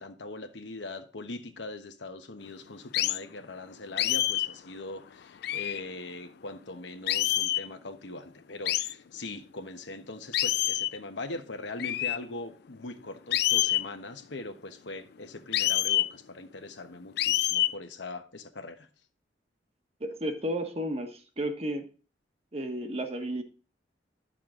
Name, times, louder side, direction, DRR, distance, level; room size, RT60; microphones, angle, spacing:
voice 1, 0.0-18.9, left 2 dB, 75° left, 1.1 m, -41 dB
sound 1, 2.9-3.2 4.0-4.5 5.4-5.8 7.1-7.7 8.7-8.9 10.3-11.0 11.8-12.2 13.3-13.9 15.5-16.1 17.2-17.7, left 14 dB, 60° left, 0.4 m, -26 dB
voice 2, 20.0-21.8 22.5-23.4, right 1 dB, 35° right, 1.4 m, -32 dB
11.0 x 6.6 x 3.8 m
head